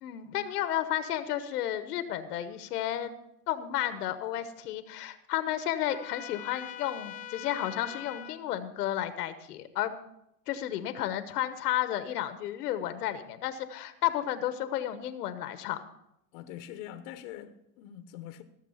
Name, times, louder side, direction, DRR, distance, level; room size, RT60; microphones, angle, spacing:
voice 1, 0.0-3.1 3.5-9.9 10.5-15.8, left 12 dB, 80° left, 1.2 m, -32 dB
Trumpet, 5.9-8.4, left 12 dB, 20° left, 0.3 m, -42 dB
voice 2, 16.3-18.4, left 11 dB, 60° left, 1.1 m, -44 dB
15.5 x 7.4 x 5.6 m
supercardioid pair, 120°, 46 cm